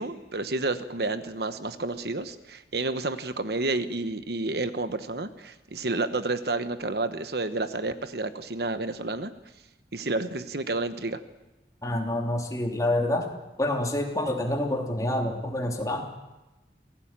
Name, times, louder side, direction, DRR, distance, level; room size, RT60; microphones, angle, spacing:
voice 1, 0.0-9.3 9.9-11.2, right 2 dB, 65° right, 10 dB, 1.2 m, -30 dB
voice 2, 11.8-13.3 13.6-16.0, left 1 dB, 20° left, 1 dB, 3.0 m, -27 dB
27.5 x 17.5 x 8.9 m, 1.0 s
head